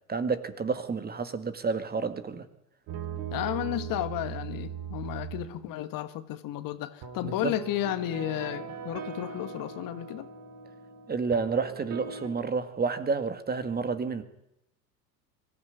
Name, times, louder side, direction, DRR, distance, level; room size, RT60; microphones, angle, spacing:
voice 1, 0.1-2.4 7.2-7.5 11.1-14.2, right 4 dB, 20° right, 2.0 m, -30 dB
sound 1, 2.9-5.9 7.0-12.3, right 7 dB, 50° right, 4.4 m, -39 dB
voice 2, 3.3-10.3, left 13 dB, 40° left, 1.7 m, -33 dB
23.5 x 15.0 x 9.3 m
figure-of-eight pair, 85°, 50 cm